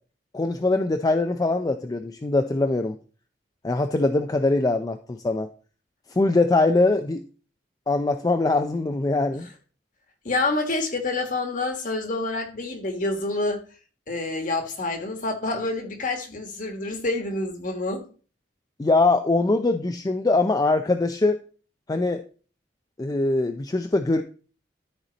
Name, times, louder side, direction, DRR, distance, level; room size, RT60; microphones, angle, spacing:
voice 1, 0.3-3.0 3.6-5.5 6.1-7.2 7.9-9.5 18.8-21.4 21.9-22.2 23.0-24.2, left 2 dB, 20° left, 0.4 m, -22 dB
voice 2, 10.2-13.6 14.1-18.0, left 2 dB, 45° left, 1.5 m, -27 dB
12.5 x 4.3 x 4.0 m
head